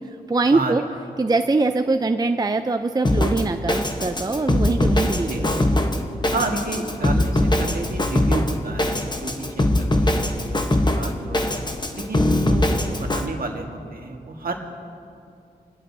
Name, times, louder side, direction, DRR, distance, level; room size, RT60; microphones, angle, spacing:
voice 1, 0.3-0.8 1.2-5.6, right 3 dB, 25° right, 7 dB, 0.5 m, -22 dB
Drum kit, 3.0-13.3, left 1 dB, 25° left, 1.0 m, -22 dB
voice 2, 5.3-5.6 6.3-11.6 11.9-14.5, right 3 dB, 60° right, 2 dB, 1.6 m, -31 dB
24.5 x 10.5 x 2.7 m, 2.4 s
cardioid pair, 45°, 17 cm